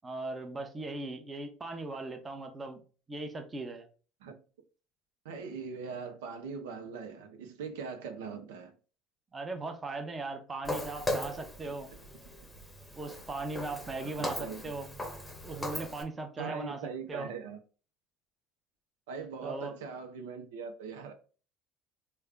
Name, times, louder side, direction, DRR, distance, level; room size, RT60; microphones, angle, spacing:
voice 1, 0.0-2.8 3.1-3.9 9.3-11.9 13.0-14.9 15.4-17.3 19.4-19.7, right 2 dB, 25° right, 0.7 m, -38 dB
voice 2, 5.2-8.7 14.0-14.6 16.4-17.6 19.1-21.1, right 5 dB, 85° right, 0.6 m, -41 dB
Walk footsteps, 10.6-16.0, left 1 dB, 10° left, 0.8 m, -38 dB
3.5 x 2.2 x 3.4 m
supercardioid pair, 85°, 0 cm